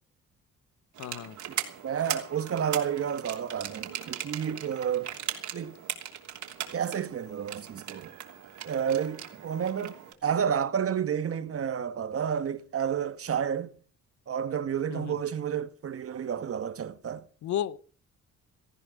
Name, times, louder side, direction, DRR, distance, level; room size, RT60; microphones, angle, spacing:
sound 1, 0.9-10.1, right 10 dB, 75° right, 3.1 m, -39 dB
voice 1, 1.0-1.3 14.9-15.1 17.4-17.8, left 10 dB, 70° left, 0.8 m, -32 dB
voice 2, 1.8-5.1 5.5-5.7 6.7-8.1 8.6-13.7 14.3-17.2, right 8 dB, 50° right, 1.4 m, -30 dB
18.0 x 14.0 x 5.1 m
cardioid pair, 90°, 30 cm